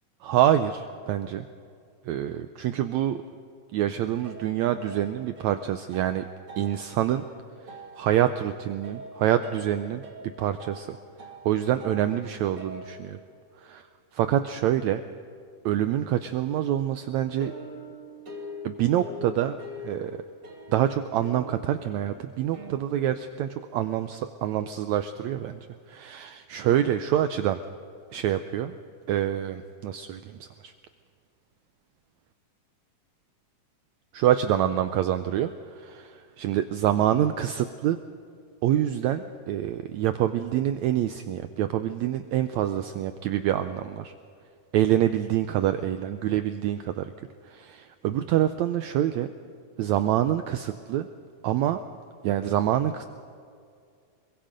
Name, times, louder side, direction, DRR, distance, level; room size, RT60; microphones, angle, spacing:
voice 1, 0.2-1.5 2.0-3.2 3.7-6.2 6.6-7.2 7.6-10.0 10.4-13.2 13.6-13.7 14.2-15.0 15.6-17.5 18.6-19.6 19.8-20.2 20.7-25.6 25.9-27.6 28.1-28.8 29.1-30.7 34.1-38.0 38.6-44.1 44.7-49.3 49.8-51.1 51.4-51.8 52.2-53.0, right 11 dB, 80° right, 10 dB, 1.6 m, -26 dB
sound 1, 4.0-13.6 17.4-22.8, equal, 40° right, 3.9 m, -44 dB
25.5 x 22.5 x 5.1 m, 2.2 s
omnidirectional pair, 3.9 m